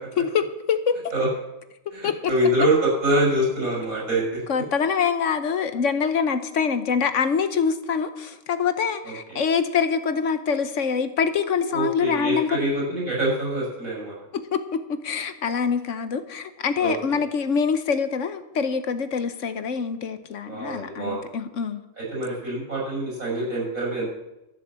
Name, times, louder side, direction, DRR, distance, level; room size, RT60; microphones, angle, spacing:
voice 1, 0.2-1.0 2.0-2.5 4.5-12.6 14.3-21.8, left 6 dB, 65° left, 1.2 m, -25 dB
voice 2, 1.9-4.4 11.7-14.1 16.8-16.9 20.5-21.2 22.0-24.0, right 1 dB, 80° right, 6.5 m, -25 dB
13.0 x 8.3 x 7.4 m
omnidirectional pair, 1.4 m